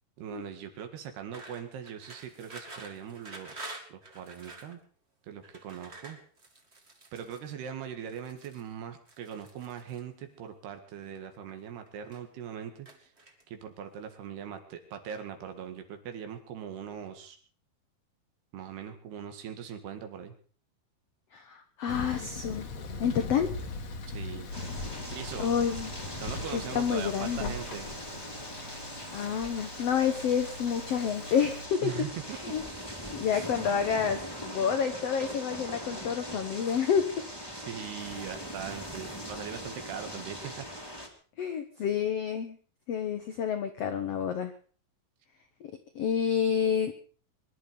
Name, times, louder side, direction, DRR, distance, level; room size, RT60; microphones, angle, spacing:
voice 1, 0.2-4.8 5.2-6.2 7.1-13.1 13.5-17.4 18.5-20.3 24.1-24.5 25.1-25.5 26.2-27.9 31.8-32.4 33.3-33.5 37.5-40.7, right 8 dB, 90° right, 7 dB, 4.0 m, -41 dB
sound 1, 1.3-4.7 5.4-7.5 8.0-8.7 9.1-10.0 10.9-11.6 11.9-12.4 12.9-13.6, right 2 dB, 25° right, 1.6 m, -48 dB
voice 2, 21.3-22.7 23.0-23.5 25.4-25.9 26.5-27.5 29.1-31.9 32.4-32.6 33.1-37.0 41.4-42.6 42.9-44.5 45.9-46.9, left 7 dB, 90° left, 9 dB, 1.3 m, -29 dB
Thunder, 21.9-31.7, left 3 dB, 50° left, 2.5 m, -40 dB
sound 2, 24.5-41.1, equal, 10° left, 1.9 m, -41 dB
23.5 x 11.5 x 5.2 m, 0.43 s
omnidirectional pair, 4.5 m